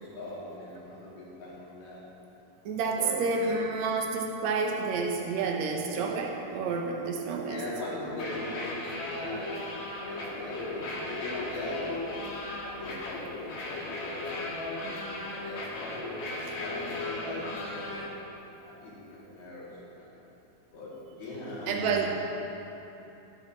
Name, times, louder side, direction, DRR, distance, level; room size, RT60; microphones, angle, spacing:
voice 1, 0.0-2.0 3.0-3.2 7.5-12.4 12.8-15.7 16.6-18.0 18.6-20.2 20.7-22.1, left 1 dB, 75° left, -7 dB, 4.7 m, -40 dB
voice 2, 2.7-7.6 8.0-8.2 16.4-16.6 21.7-22.1, right 4 dB, 70° right, 1 dB, 1.7 m, -29 dB
sound 1, 8.1-18.1, left 2 dB, 55° left, 2.6 m, -36 dB
15.5 x 12.0 x 3.1 m, 2.9 s
omnidirectional pair, 4.5 m